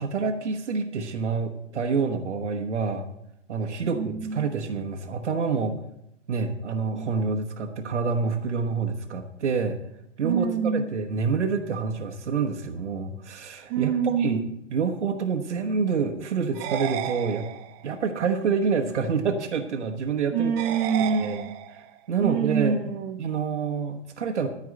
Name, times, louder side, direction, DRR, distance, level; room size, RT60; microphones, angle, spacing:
voice 1, 0.0-3.1 3.5-5.8 6.3-9.8 10.2-14.4 14.7-17.5 17.8-20.5 21.2-21.4 22.1-22.8 23.2-24.5, right 5 dB, 65° right, 3 dB, 1.2 m, -27 dB
voice 2, 3.9-4.5 6.9-7.1 10.2-10.9 13.7-14.4 20.3-21.5 22.2-23.2, right 6 dB, 35° right, 2 dB, 1.1 m, -26 dB
sound 1, 16.5-18.0 20.6-22.0, right 11 dB, 20° right, 0.5 m, -33 dB
14.0 x 4.8 x 7.8 m, 0.79 s
figure-of-eight pair, 110°, 37 cm